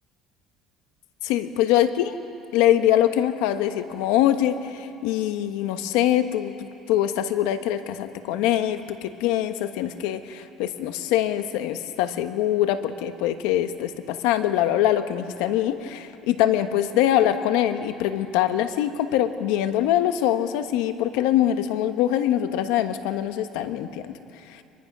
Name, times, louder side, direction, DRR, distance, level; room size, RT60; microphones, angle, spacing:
voice 1, 1.2-2.2 2.5-24.1, left 12 dB, 90° left, 9 dB, 1.2 m, -23 dB
26.0 x 22.0 x 6.1 m, 2.7 s
cardioid pair, 140°, 0 cm